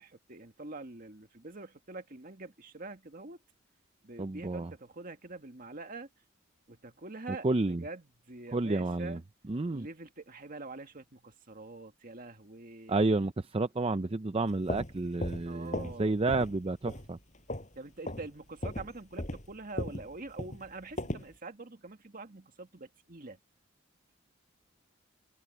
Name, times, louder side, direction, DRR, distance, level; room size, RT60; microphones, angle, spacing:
voice 1, 0.0-3.4 4.0-6.1 6.7-9.2 9.7-13.1 15.5-16.1 17.8-23.4, right 3 dB, 45° right, 1.9 m, -45 dB
voice 2, 4.2-4.7 7.4-7.8 8.5-9.2 9.5-9.9 12.9-17.2, right 2 dB, 25° right, 0.5 m, -30 dB
sound 1, 14.5-16.0 16.3-16.6 16.9-17.8 18.0-18.3 18.6-21.3, left 1 dB, 35° left, 5.6 m, -37 dB
head